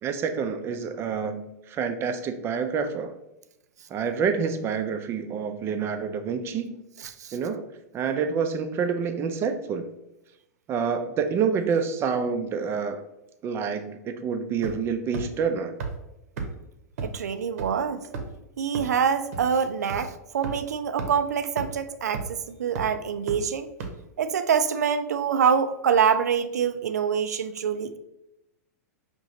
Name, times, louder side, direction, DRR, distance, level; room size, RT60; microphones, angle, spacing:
voice 1, 0.0-3.2 3.9-6.8 7.3-7.7 7.9-9.9 10.7-13.0 13.4-15.8, right 6 dB, 30° right, 8 dB, 0.4 m, -27 dB
voice 2, 7.0-7.3 17.0-18.0 18.6-23.7 24.2-28.0, right 7 dB, 90° right, 10 dB, 0.4 m, -25 dB
sound 1, 14.6-14.9 15.1-15.2 15.8-15.9 16.4-16.5 17.0-17.1 17.6-17.7 18.1-18.4 18.7-18.8 19.3-19.4 19.9-20.0 20.4-20.5 21.0-21.1 21.6-21.7 22.1-22.4 22.7-22.8 23.3-23.4 23.8-23.9, right 5 dB, 70° right, 0.8 m, -31 dB
5.0 x 2.9 x 2.7 m, 0.90 s
hypercardioid pair, 115°, 9 cm